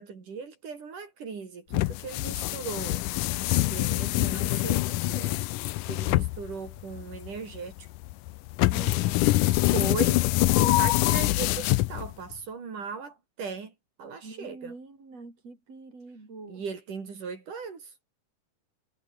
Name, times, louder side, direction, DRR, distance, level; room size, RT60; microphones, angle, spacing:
voice 1, 0.0-3.0 3.5-5.4 5.9-7.9 9.7-10.2 10.6-13.7 14.0-14.7 16.5-17.9, right 5 dB, 70° right, 5.6 m, -38 dB
sound 1, 1.7-12.3, left 18 dB, 85° left, 2.3 m, -25 dB
voice 2, 8.7-9.6 14.2-16.6, right 3 dB, 50° right, 7.8 m, -45 dB
omnidirectional pair, 3.7 m